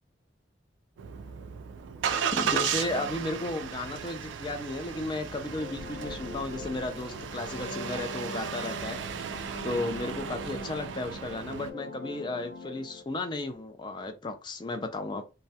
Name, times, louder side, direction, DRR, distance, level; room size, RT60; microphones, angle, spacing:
Engine starting, 1.0-11.7, right 7 dB, 85° right, 0.3 m, -35 dB
voice 1, 2.3-9.0 9.6-15.3, left 2 dB, 25° left, 0.4 m, -34 dB
sound 1, 5.1-13.0, left 2 dB, 85° left, 0.5 m, -42 dB
2.3 x 2.0 x 2.7 m
head